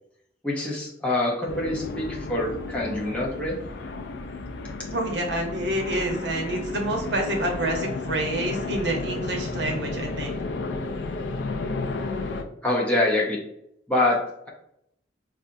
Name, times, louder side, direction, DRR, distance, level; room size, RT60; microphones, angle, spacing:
voice 1, 0.4-3.6 12.6-13.4 13.9-14.2, left 2 dB, 5° left, -4 dB, 0.6 m, -25 dB
sound 1, 1.5-12.4, left 3 dB, 70° left, 0.4 m, -32 dB
voice 2, 4.9-10.3, right 1 dB, 70° right, 1 dB, 0.9 m, -28 dB
4.1 x 2.4 x 2.5 m, 0.75 s
head